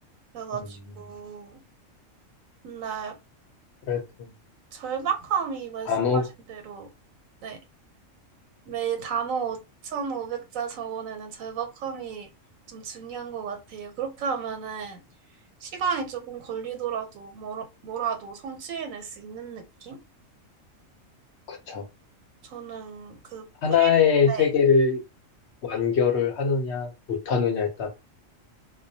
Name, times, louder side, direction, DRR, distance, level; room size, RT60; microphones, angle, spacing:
voice 1, 0.3-1.6 2.6-3.2 4.7-6.9 7.4-7.6 8.7-12.3 12.7-15.0 15.6-20.0 22.4-23.9 24.3-24.5, right 7 dB, 85° right, 1.1 m, -33 dB
voice 2, 3.9-4.3 5.9-6.3 21.5-21.8 23.6-25.0 25.6-27.9, left 6 dB, 60° left, 0.8 m, -23 dB
2.3 x 2.1 x 2.6 m
omnidirectional pair, 1.4 m